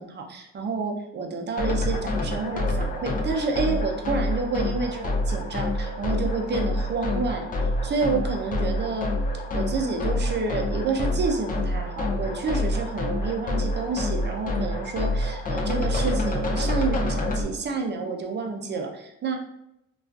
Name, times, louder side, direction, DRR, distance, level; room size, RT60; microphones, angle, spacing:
voice 1, 0.0-9.1 9.5-19.4, right 4 dB, 35° right, 2 dB, 0.5 m, -29 dB
sound 1, 1.6-17.4, left 1 dB, 30° left, 0.4 m, -27 dB
2.3 x 2.3 x 2.3 m, 0.83 s
cardioid pair, 90°, 30 cm